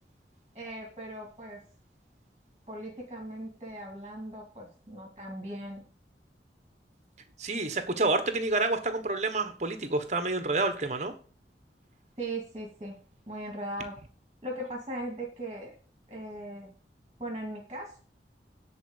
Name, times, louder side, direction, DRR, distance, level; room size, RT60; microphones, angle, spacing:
voice 1, 0.5-1.6 2.7-5.8 12.2-13.0 13.3-14.0 14.4-15.8 16.1-16.7 17.2-18.0, right 1 dB, 25° right, 0 dB, 2.4 m, -39 dB
voice 2, 7.4-11.1, right 2 dB, 40° right, 9 dB, 1.2 m, -28 dB
10.0 x 4.5 x 7.2 m, 0.39 s
head